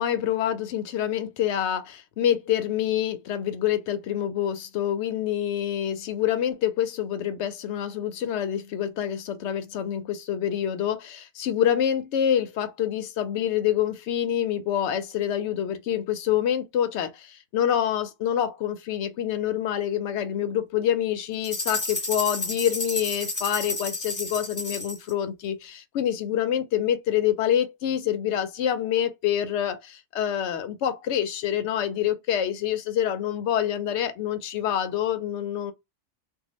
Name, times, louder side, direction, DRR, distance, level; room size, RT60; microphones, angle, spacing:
voice 1, 0.0-35.7, left 10 dB, 70° left, 0.9 m, -26 dB
sound 1, 21.4-25.1, left 2 dB, 15° left, 0.7 m, -31 dB
2.7 x 2.3 x 2.9 m
omnidirectional pair, 1.3 m